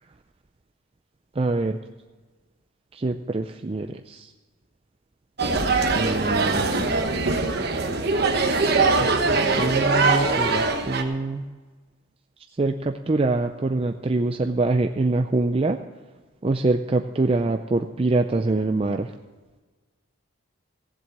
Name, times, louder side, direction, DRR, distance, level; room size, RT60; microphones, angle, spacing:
voice 1, 1.4-1.8 2.9-4.3 5.9-6.9 9.0-9.3 9.6-11.5 12.6-15.8 16.4-19.1, right 2 dB, 30° right, 6 dB, 0.4 m, -24 dB
sound 1, 5.4-11.0, right 3 dB, 50° right, 1.1 m, -22 dB
15.5 x 7.7 x 6.5 m, 1.3 s
head